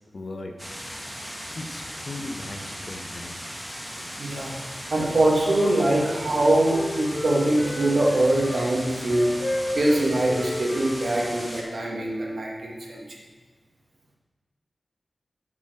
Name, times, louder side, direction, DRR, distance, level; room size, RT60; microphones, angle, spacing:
voice 1, 0.1-0.6 1.5-3.4 4.7-4.8, left 2 dB, 55° left, 4 dB, 0.9 m, -37 dB
sound 1, 0.6-11.6, equal, ahead, 1.7 m, -37 dB
voice 2, 4.2-4.5 4.9-9.3 9.8-13.0, right 1 dB, 60° right, -3 dB, 2.1 m, -23 dB
Wind instrument woodwind instrument, 5.5-8.6 9.0-12.5, left 1 dB, 40° left, 1.7 m, -34 dB
8.4 x 6.1 x 6.3 m, 1.3 s
wide cardioid pair, 90°, 0 cm